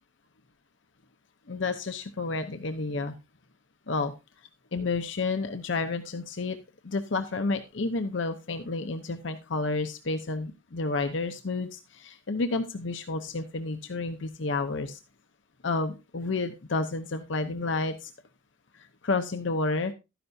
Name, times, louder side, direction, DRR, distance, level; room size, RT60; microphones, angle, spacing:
voice 1, 1.5-3.1 3.9-4.1 4.7-6.6 6.8-15.0 15.6-18.1 18.7-19.9, left 3 dB, 65° left, 7 dB, 0.8 m, -30 dB
12.5 x 10.0 x 2.7 m, 0.27 s
head